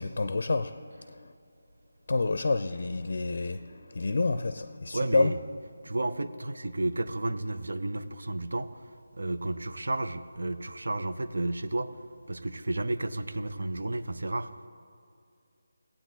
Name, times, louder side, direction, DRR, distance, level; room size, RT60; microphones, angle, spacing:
voice 1, 0.0-1.3 2.1-5.3, left 3 dB, 60° left, 0.4 m, -29 dB
voice 2, 4.9-5.4 5.8-8.7 9.1-11.9 12.3-14.5, right 2 dB, 80° right, 0.6 m, -32 dB
16.0 x 8.7 x 4.0 m
figure-of-eight pair, 170°, 0 cm